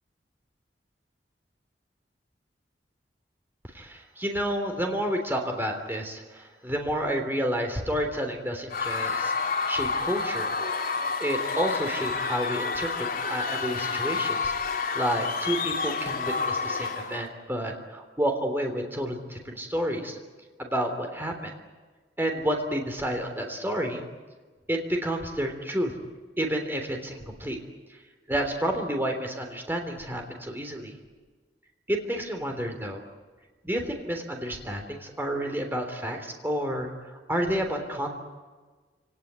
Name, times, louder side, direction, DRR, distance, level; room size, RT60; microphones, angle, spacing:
voice 1, 3.7-9.3 9.7-10.6 11.2-20.2 20.6-21.5 22.2-24.0 24.7-25.9 26.4-27.6 28.3-30.9 31.9-33.0 33.6-38.1, equal, 10° right, 3 dB, 3.4 m, -30 dB
Screaming / Cheering / Crowd, 8.7-17.3, left 4 dB, 55° left, 3.2 m, -29 dB
28.5 x 18.5 x 9.5 m, 1.4 s
head